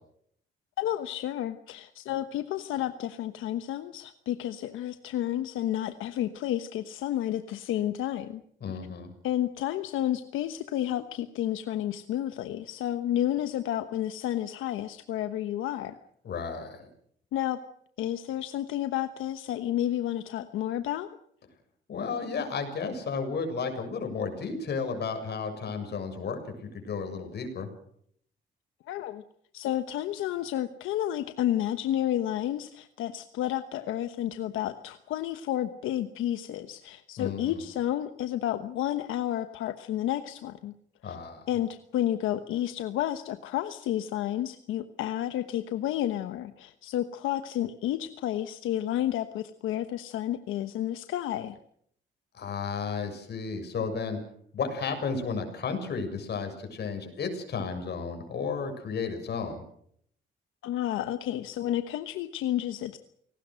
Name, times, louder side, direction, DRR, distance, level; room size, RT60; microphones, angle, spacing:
voice 1, 0.8-8.4 9.2-15.9 17.3-17.6 18.0-21.1 28.9-29.2 29.5-40.7 41.0-41.2 41.5-51.5 60.6-63.0, left 12 dB, 90° left, 10 dB, 1.2 m, -31 dB
voice 2, 8.6-9.1 16.2-16.9 21.9-27.7 37.2-37.6 41.0-41.4 52.3-54.2 54.5-59.6, left 5 dB, 55° left, 6 dB, 7.1 m, -33 dB
28.0 x 19.0 x 6.4 m, 0.68 s
cardioid pair, 90°, 20 cm